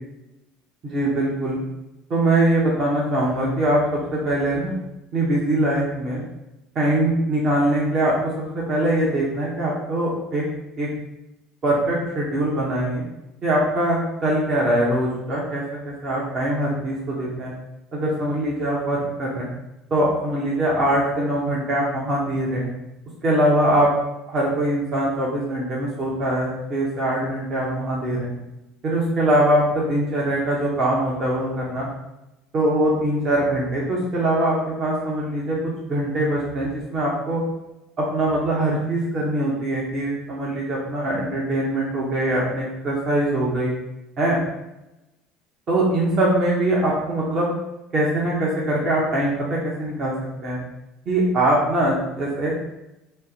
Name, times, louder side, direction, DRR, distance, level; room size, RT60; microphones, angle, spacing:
voice 1, 0.8-1.6 2.1-4.8 5.1-6.2 6.7-10.5 10.8-10.9 11.6-13.0 13.4-17.5 17.9-19.5 19.9-22.7 23.2-23.9 24.3-28.3 28.8-31.9 32.5-37.4 38.0-43.7 44.2-44.4 45.7-47.5 47.9-50.1 50.4-50.6 51.1-52.5, right 1 dB, 40° right, -4 dB, 0.8 m, -22 dB
3.2 x 2.0 x 2.8 m, 0.92 s
figure-of-eight pair, 65°, 0 cm